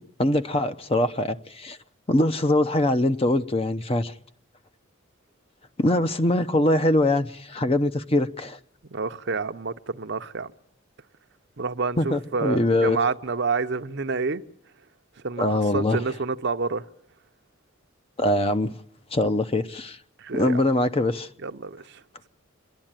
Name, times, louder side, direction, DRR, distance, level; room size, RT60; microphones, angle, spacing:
voice 1, 0.0-1.8 2.1-4.1 5.8-8.6 12.0-13.0 15.4-16.0 18.2-18.7 19.1-20.0 20.3-21.3, left 1 dB, 30° left, 0.7 m, -23 dB
voice 2, 8.9-10.5 11.6-14.4 15.2-16.8 20.2-20.6 21.4-22.0, right 4 dB, 60° right, 0.7 m, -28 dB
27.0 x 11.0 x 9.0 m
head